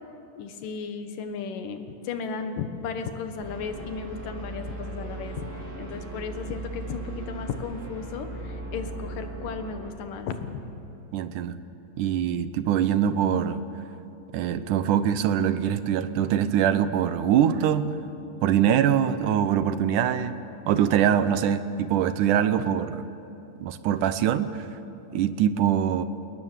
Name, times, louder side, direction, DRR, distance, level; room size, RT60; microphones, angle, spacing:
voice 1, 0.4-10.5, left 5 dB, 80° left, 8 dB, 3.0 m, -35 dB
sound 1, 3.4-9.9, right 2 dB, 25° right, 2.5 m, -37 dB
voice 2, 11.1-11.6 12.0-13.6 14.3-17.9 18.4-20.3 20.7-23.1 23.6-24.7 25.1-26.0, right 9 dB, 75° right, 12 dB, 2.3 m, -23 dB
28.0 x 19.0 x 7.4 m, 2.8 s
omnidirectional pair, 3.8 m